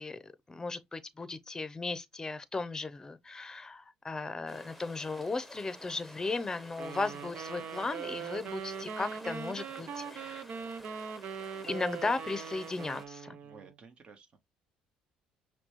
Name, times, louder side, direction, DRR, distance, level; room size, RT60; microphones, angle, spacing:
voice 1, 0.0-10.4 11.6-13.4, left 3 dB, 20° left, 0.7 m, -36 dB
sound 1, 4.5-13.1, equal, 5° right, 1.1 m, -52 dB
sound 2, 6.8-13.7, right 6 dB, 60° right, 0.7 m, -41 dB
voice 2, 13.4-14.4, right 5 dB, 40° right, 1.3 m, -54 dB
5.9 x 2.3 x 3.1 m
supercardioid pair, 80°, 3 cm